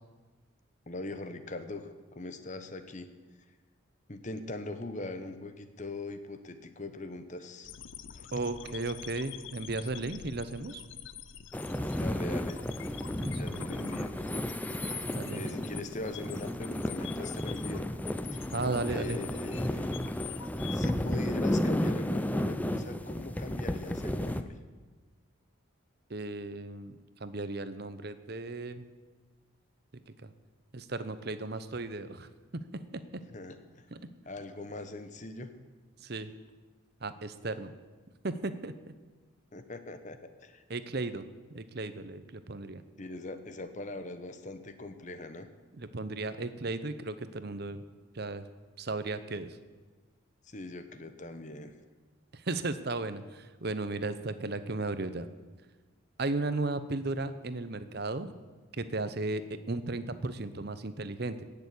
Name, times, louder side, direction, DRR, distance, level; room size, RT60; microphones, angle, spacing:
voice 1, 0.9-3.1 4.1-7.7 8.1-8.3 11.9-12.6 13.3-14.2 15.3-17.9 18.3-18.5 18.8-19.9 20.7-24.5 33.3-33.9 34.3-35.5 39.5-40.6 43.0-45.5 50.4-51.8, left 2 dB, 35° left, 9 dB, 1.0 m, -41 dB
sound 1, 7.6-20.9, left 10 dB, 65° left, 0.6 m, -47 dB
voice 2, 8.3-10.8 13.2-13.7 15.0-15.5 18.5-19.2 26.1-28.9 30.1-30.3 30.7-32.3 32.7-33.2 33.9-34.0 36.0-36.3 37.0-37.7 38.2-38.9 40.7-42.8 45.8-47.8 48.1-48.4 48.8-49.6 52.3-55.3 56.2-58.3 58.7-61.4, right 2 dB, 50° right, 12 dB, 0.8 m, -35 dB
sound 2, 11.5-24.4, left 1 dB, 5° left, 0.5 m, -33 dB
17.5 x 7.0 x 8.5 m, 1.3 s
head